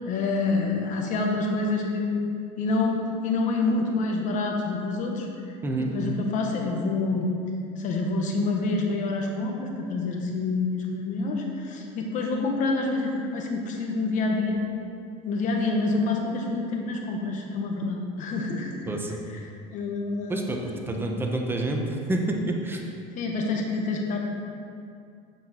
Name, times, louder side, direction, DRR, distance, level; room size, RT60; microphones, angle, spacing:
voice 1, 0.0-2.2 2.6-5.3 5.9-7.3 7.8-14.6 15.2-18.8 19.3-19.4 19.7-20.4 20.9-21.0 23.2-24.2, left 3 dB, 50° left, 1 dB, 1.3 m, -27 dB
voice 2, 18.9-19.2 20.3-22.8, right 2 dB, 15° right, 2 dB, 0.9 m, -28 dB
7.2 x 5.9 x 4.3 m, 2.4 s
supercardioid pair, 115°, 17 cm